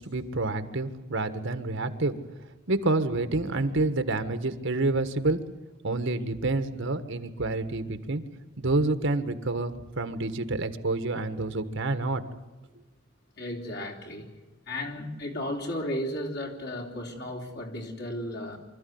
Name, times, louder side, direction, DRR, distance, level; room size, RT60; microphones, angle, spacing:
voice 1, 0.0-2.1 2.7-5.4 5.8-8.2 8.6-12.2, right 2 dB, 65° right, 9 dB, 1.5 m, -28 dB
voice 2, 13.4-14.3 14.7-18.6, left 1 dB, 55° left, 1 dB, 3.8 m, -34 dB
25.0 x 13.5 x 9.4 m, 1.2 s
head